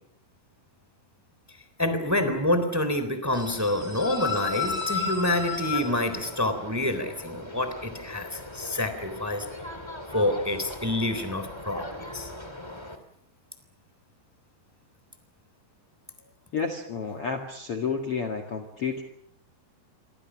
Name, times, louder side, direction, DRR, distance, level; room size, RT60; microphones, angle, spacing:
voice 1, 1.8-9.4 10.1-11.8 12.1-12.3, left 1 dB, 5° right, 9 dB, 2.0 m, -27 dB
sound 1, 3.3-13.0, left 4 dB, 30° left, 0.4 m, -36 dB
voice 2, 16.5-19.0, left 5 dB, 75° left, 3 dB, 1.3 m, -30 dB
28.5 x 24.5 x 6.3 m, 0.72 s
omnidirectional pair, 5.8 m